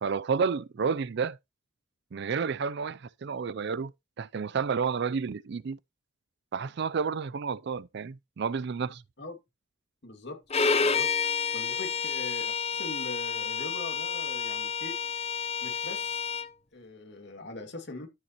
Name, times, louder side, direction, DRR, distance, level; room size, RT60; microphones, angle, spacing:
voice 1, 0.0-1.4 2.1-3.9 4.2-5.8 6.5-9.0, right 5 dB, 55° right, 0.4 m, -30 dB
voice 2, 10.0-10.4 10.8-11.2 11.5-15.0 15.6-16.3 16.7-18.1, left 2 dB, 55° left, 2.3 m, -42 dB
Bowed string instrument, 10.5-16.5, left 6 dB, 30° left, 0.6 m, -29 dB
12.5 x 6.8 x 3.0 m
head